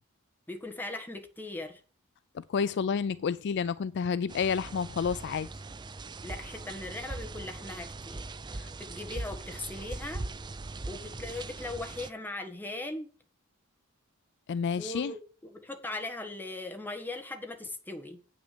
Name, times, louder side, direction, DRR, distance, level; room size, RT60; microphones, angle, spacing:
voice 1, 0.5-1.8 6.2-8.2 8.5-10.2 10.8-13.1 14.8-15.2 15.5-18.2, left 2 dB, 10° left, 1.4 m, -39 dB
voice 2, 2.3-5.5 8.6-8.7 14.5-15.1, left 6 dB, 55° left, 0.4 m, -30 dB
sound 1, 4.3-12.1, right 3 dB, 20° right, 0.5 m, -40 dB
8.6 x 6.2 x 6.8 m
head